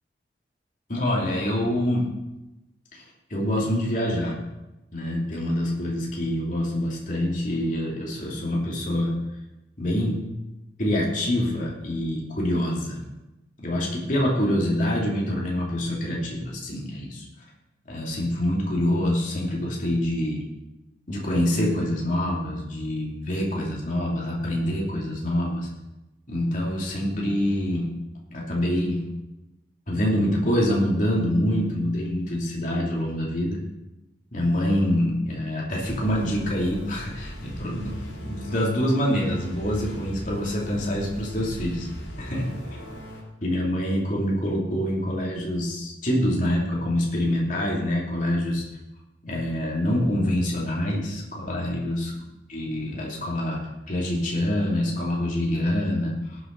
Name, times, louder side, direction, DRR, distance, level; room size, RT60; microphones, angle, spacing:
voice 1, 0.9-2.1 2.9-3.0 3.3-4.4 4.9-9.1 9.8-10.2 10.8-13.0 13.6-17.2 17.9-20.4 21.1-25.7 26.3-27.9 28.3-29.0 29.9-33.6 34.3-41.9 42.2-42.5 43.4-48.6 49.2-52.1 52.5-56.4, left 1 dB, 50° left, -3 dB, 2.9 m, -26 dB
sound 1, 35.8-43.2, equal, 80° left, 3.3 m, -39 dB
18.5 x 8.0 x 4.0 m, 0.98 s
head